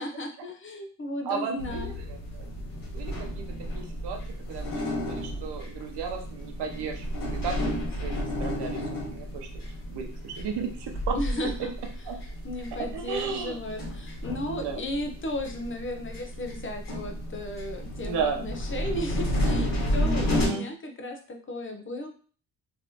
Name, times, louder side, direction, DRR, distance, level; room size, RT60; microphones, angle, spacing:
voice 1, 0.0-1.9 11.1-11.7 12.4-22.1, left 1 dB, 30° left, 4 dB, 0.6 m, -35 dB
voice 2, 1.2-2.4 2.9-3.4 3.7-4.2 4.5-7.7 8.0-8.1 8.4-8.8 9.1-9.5 9.9-11.2 12.1-12.2 12.9-13.6 14.5-14.8 18.0-18.5 20.3-20.7, right 6 dB, 90° right, 3 dB, 0.8 m, -34 dB
sound 1, 1.6-20.5, equal, 55° left, 1.4 m, -32 dB
3.2 x 2.7 x 2.7 m, 0.41 s
cardioid pair, 105°, 39 cm